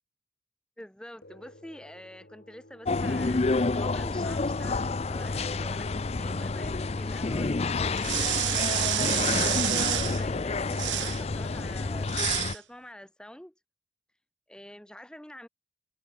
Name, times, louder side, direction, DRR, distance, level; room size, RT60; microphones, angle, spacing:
voice 1, 0.8-8.2 8.8-9.7 10.0-13.5 14.5-15.5, equal, 5° left, 0.9 m, -47 dB
sound 1, 1.2-10.0, left 1 dB, 60° left, 2.5 m, -59 dB
sound 2, 2.9-12.5, left 3 dB, 35° left, 0.5 m, -29 dB
sound 3, 7.9-10.2 10.7-11.2 12.1-12.6, right 16 dB, 75° right, 0.5 m, -29 dB
head